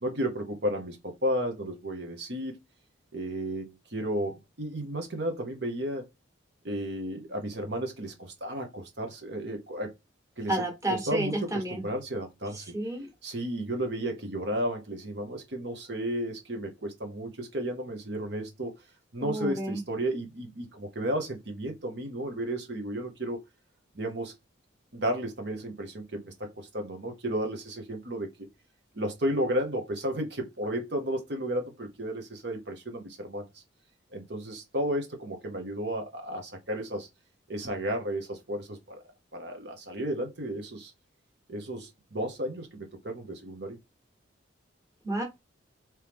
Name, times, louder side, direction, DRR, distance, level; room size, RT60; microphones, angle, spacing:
voice 1, 0.0-2.5 3.1-6.1 6.6-9.9 10.4-12.7 13.2-18.8 19.1-23.4 23.9-24.3 24.9-28.3 28.9-33.6 34.1-37.1 37.5-39.0 39.3-40.9 41.5-43.8, right 1 dB, 60° right, 1.1 m, -33 dB
voice 2, 10.5-11.8 12.5-13.1 19.2-19.8 45.0-45.2, right 1 dB, 15° right, 1.4 m, -31 dB
4.5 x 3.1 x 3.5 m
head